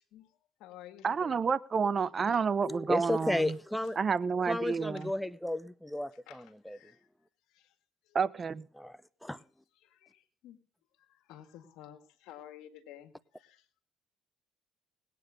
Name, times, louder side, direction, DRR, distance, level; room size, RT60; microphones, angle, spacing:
voice 1, 0.0-1.4 2.3-2.5 5.0-5.1 6.3-7.1 7.5-7.8 8.0-8.2 9.8-10.6 10.9-13.7, left 11 dB, 80° left, 1.9 m, -53 dB
voice 2, 1.0-3.5 4.0-5.1 8.1-8.7, right 5 dB, 40° right, 0.8 m, -29 dB
voice 3, 2.6-4.0 4.4-6.9 8.8-9.4, left 1 dB, 5° left, 0.7 m, -34 dB
19.5 x 9.3 x 5.2 m
supercardioid pair, 70°, 0 cm